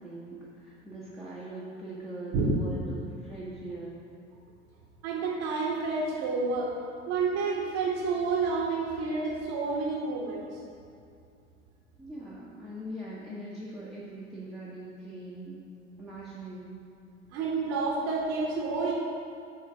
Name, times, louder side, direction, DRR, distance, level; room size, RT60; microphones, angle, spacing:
voice 1, 0.0-4.1 12.0-15.6 16.0-16.8, right 1 dB, ahead, -8 dB, 1.2 m, -41 dB
voice 2, 5.0-6.7 7.1-10.6 17.3-18.9, right 4 dB, 55° right, -5 dB, 1.3 m, -29 dB
7.7 x 3.8 x 6.2 m, 2.4 s
figure-of-eight pair, 65°, 35 cm